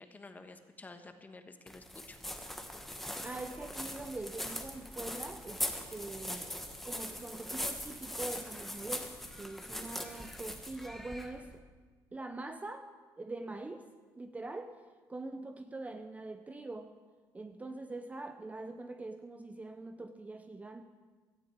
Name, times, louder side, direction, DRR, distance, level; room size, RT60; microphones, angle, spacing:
voice 1, 0.0-2.2, left 3 dB, 20° left, 7 dB, 1.3 m, -51 dB
sound 1, 1.7-11.6, equal, ahead, 1.3 m, -41 dB
voice 2, 3.2-5.6 5.9-6.6 6.8-11.5 12.1-13.9 14.2-14.8 15.1-16.9 17.3-20.8, right 2 dB, 15° right, 8 dB, 0.7 m, -43 dB
17.5 x 13.0 x 4.7 m, 1.4 s
cardioid pair, 105°, 8 cm